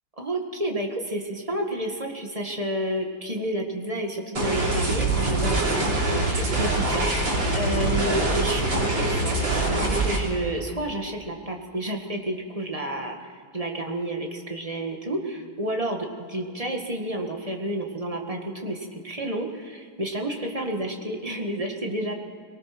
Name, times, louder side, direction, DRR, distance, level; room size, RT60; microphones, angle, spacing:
voice 1, 0.2-22.1, right 1 dB, 20° right, 2 dB, 1.8 m, -30 dB
sound 1, 4.4-10.2, right 2 dB, 80° right, 4.2 m, -24 dB
23.5 x 19.0 x 6.1 m, 2.1 s
omnidirectional pair, 2.0 m